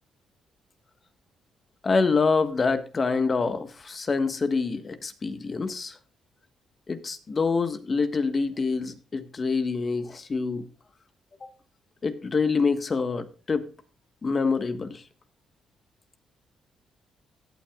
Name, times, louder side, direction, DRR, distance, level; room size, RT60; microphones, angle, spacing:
voice 1, 1.8-6.0 6.9-10.6 11.4-11.5 12.0-13.7 14.2-15.0, left 4 dB, 35° left, 9 dB, 1.5 m, -26 dB
16.5 x 8.9 x 2.4 m, 0.36 s
cardioid pair, 90°, 0 cm